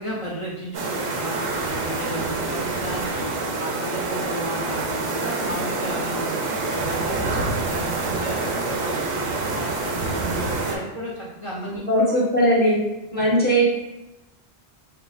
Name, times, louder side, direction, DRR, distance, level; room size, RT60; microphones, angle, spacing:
voice 1, 0.0-6.4 6.7-11.8, equal, 35° left, -5 dB, 0.6 m, -33 dB
sound 1, 0.7-10.8, right 3 dB, 90° right, 0.9 m, -27 dB
voice 2, 11.9-12.8 13.1-13.6, equal, 10° left, -6 dB, 1.0 m, -19 dB
5.7 x 2.1 x 2.3 m, 0.98 s
omnidirectional pair, 1.1 m